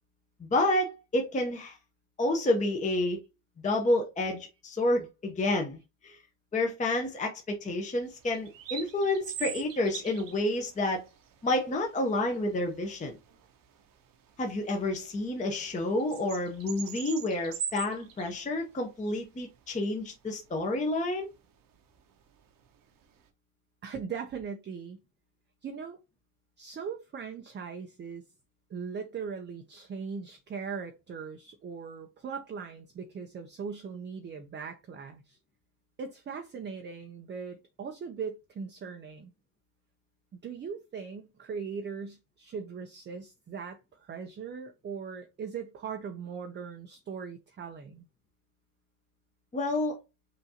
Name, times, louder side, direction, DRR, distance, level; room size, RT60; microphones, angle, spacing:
voice 1, 0.4-1.8 2.2-3.2 3.6-6.2 6.5-11.0 11.4-13.2 14.4-21.3 49.5-50.0, left 1 dB, 15° left, 0.7 m, -29 dB
sound 1, 8.1-23.3, right 8 dB, 45° right, 0.8 m, -44 dB
voice 2, 23.8-25.0 25.6-26.0 26.6-28.2 28.7-35.4 36.0-39.3 40.4-48.1, right 6 dB, 25° right, 0.5 m, -39 dB
5.7 x 2.6 x 2.7 m
cardioid pair, 120°, 46 cm